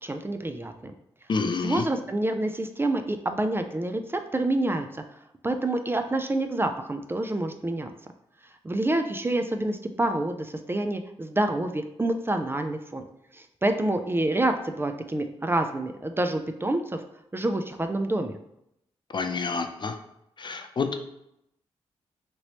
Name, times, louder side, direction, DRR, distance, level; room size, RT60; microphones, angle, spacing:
voice 1, 0.0-0.9 1.6-4.9 5.4-7.9 8.6-13.0 13.3-17.0 17.3-18.4, right 1 dB, 20° right, 7 dB, 0.4 m, -27 dB
voice 2, 1.3-1.8 19.1-20.0 20.4-21.0, left 4 dB, 40° left, 6 dB, 0.4 m, -28 dB
3.0 x 2.9 x 2.8 m, 0.79 s
supercardioid pair, 45°, 12 cm